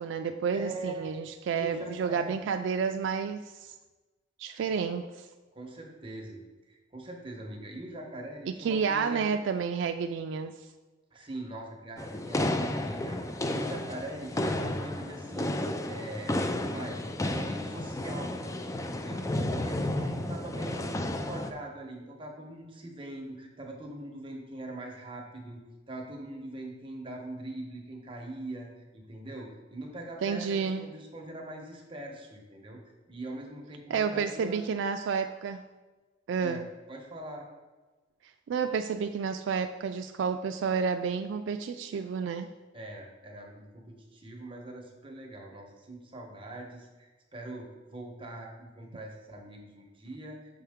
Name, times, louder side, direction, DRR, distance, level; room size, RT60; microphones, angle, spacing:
voice 1, 0.0-3.7 4.4-5.3 8.6-10.5 30.2-30.9 33.9-35.6 36.3-36.7 38.5-42.5, right 6 dB, 80° right, 7 dB, 0.3 m, -30 dB
voice 2, 0.5-1.1 1.5-2.4 5.5-6.4 6.7-9.2 11.1-16.3 16.7-25.6 25.9-32.8 33.1-34.6 36.4-36.6 36.9-37.5 42.7-50.4, right 1 dB, 30° right, 1 dB, 1.0 m, -42 dB
sound 1, 12.0-21.5, left 1 dB, 15° left, 0.4 m, -32 dB
6.5 x 5.7 x 3.5 m, 1.2 s
head